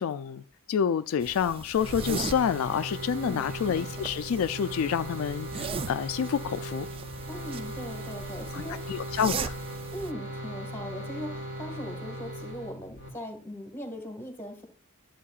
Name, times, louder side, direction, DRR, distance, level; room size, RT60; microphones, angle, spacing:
voice 1, 0.0-6.9 8.5-9.5, left 7 dB, 80° left, 0.3 m, -28 dB
sound 1, 1.2-10.1, right 5 dB, 25° right, 0.3 m, -39 dB
sound 2, 1.8-13.1, equal, 65° right, 3.9 m, -38 dB
voice 2, 3.1-3.5 7.3-9.0 9.9-14.7, equal, 10° left, 1.7 m, -40 dB
11.0 x 7.5 x 2.4 m
head